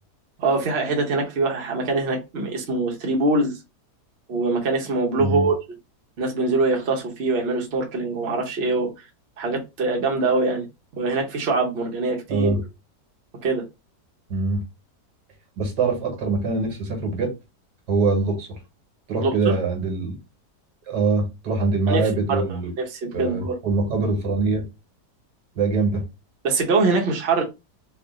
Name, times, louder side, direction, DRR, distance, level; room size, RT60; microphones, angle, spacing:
voice 1, 0.4-3.6 4.3-5.5 6.2-8.9 9.4-10.7 11.0-12.5 13.4-13.6 19.2-19.5 21.9-22.4 22.8-23.5 26.4-27.4, right 3 dB, 45° right, 1.0 m, -23 dB
voice 2, 12.3-12.6 14.3-14.6 15.6-17.3 17.9-18.5 19.1-20.2 20.9-22.7 23.1-24.6 25.6-26.0, right 3 dB, 75° right, 1.8 m, -23 dB
3.4 x 2.4 x 3.6 m
omnidirectional pair, 1.8 m